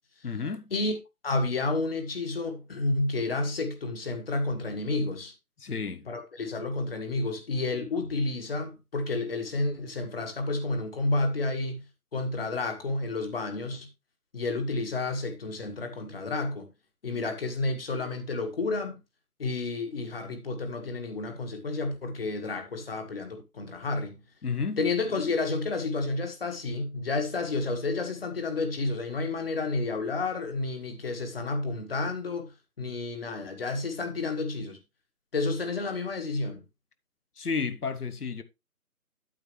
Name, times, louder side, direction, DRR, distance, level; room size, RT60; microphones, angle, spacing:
voice 1, 0.2-0.7 5.6-6.1 24.4-24.8 37.4-38.4, left 5 dB, 80° left, 1.1 m, -32 dB
voice 2, 1.2-5.3 6.1-11.8 12.1-13.9 14.3-16.7 17.0-19.0 19.4-24.2 24.8-34.8 35.3-36.6, left 3 dB, 40° left, 1.5 m, -30 dB
8.9 x 8.0 x 3.1 m
figure-of-eight pair, 160°, 45 cm